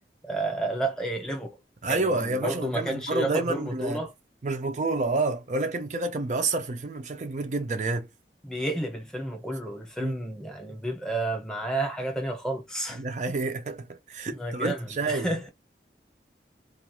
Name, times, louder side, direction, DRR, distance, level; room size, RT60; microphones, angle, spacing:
voice 1, 0.2-1.6 1.9-4.1 8.4-13.0 14.3-15.5, right 1 dB, 5° left, 0.9 m, -31 dB
voice 2, 1.8-4.0 4.4-8.1 10.0-10.2 13.0-15.3, right 3 dB, 40° right, 0.4 m, -29 dB
2.5 x 2.3 x 2.9 m
head